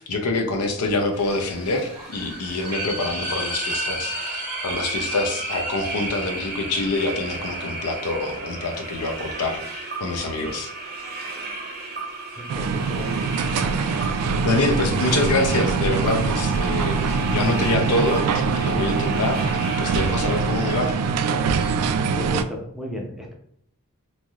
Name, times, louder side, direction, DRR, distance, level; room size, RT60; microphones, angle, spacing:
voice 1, 0.0-10.7 13.9-14.1 14.4-21.0, left 2 dB, 85° left, 5 dB, 0.6 m, -26 dB
sound 1, 1.1-20.9, right 3 dB, 45° right, 0.6 m, -34 dB
sound 2, 1.6-8.4, left 1 dB, 20° left, 1.0 m, -36 dB
voice 2, 12.4-13.2 22.2-23.3, equal, ahead, -1 dB, 0.5 m, -34 dB
sound 3, 12.5-22.4, right 5 dB, 85° right, 0.3 m, -23 dB
3.2 x 2.6 x 2.3 m, 0.70 s
head